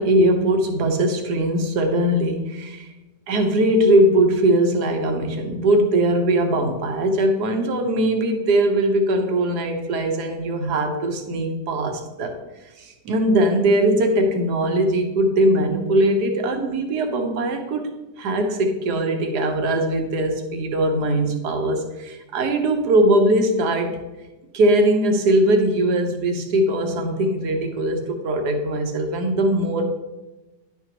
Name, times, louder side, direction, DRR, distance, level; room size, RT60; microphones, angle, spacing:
voice 1, 0.0-2.9 3.3-12.4 12.8-17.9 18.2-24.0 24.5-29.8, right 1 dB, 65° right, 4 dB, 1.5 m, -20 dB
10.5 x 6.0 x 3.0 m, 1.1 s
omnidirectional pair, 1.9 m